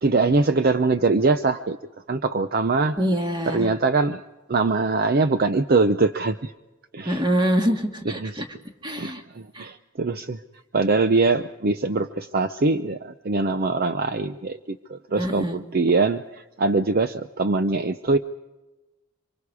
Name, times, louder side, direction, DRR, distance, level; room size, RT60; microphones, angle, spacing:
voice 1, 0.0-1.8 2.1-3.0 3.5-4.2 4.5-6.5 6.9-7.2 8.1-8.4 9.0-10.4 10.7-18.2, right 3 dB, 45° right, 10 dB, 0.6 m, -22 dB
voice 2, 3.0-3.7 7.1-8.4 8.8-9.2 9.5-9.7 15.2-15.6, equal, 20° right, 3 dB, 2.1 m, -24 dB
26.0 x 24.0 x 4.9 m, 1.1 s
head